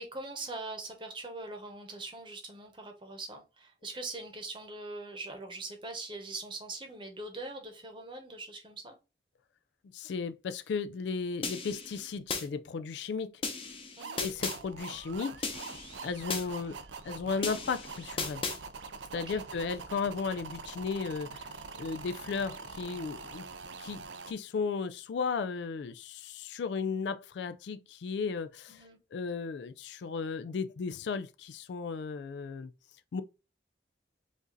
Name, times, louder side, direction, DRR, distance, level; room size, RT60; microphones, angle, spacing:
voice 1, 0.0-9.0 14.0-14.3 19.1-19.4 28.7-29.0, right 2 dB, 25° right, 0.9 m, -42 dB
voice 2, 9.9-13.4 14.2-15.5 16.0-16.8 17.0-18.4 19.1-21.4 21.8-23.4 23.8-28.8 29.1-32.7 33.1-33.2, left 5 dB, 75° left, 0.3 m, -35 dB
sound 1, 11.4-12.4 13.4-14.6 15.4-16.4 17.4-18.6, left 4 dB, 30° left, 0.8 m, -36 dB
sound 2, 14.0-24.3, right 4 dB, 85° right, 0.6 m, -44 dB
5.1 x 2.6 x 3.8 m
head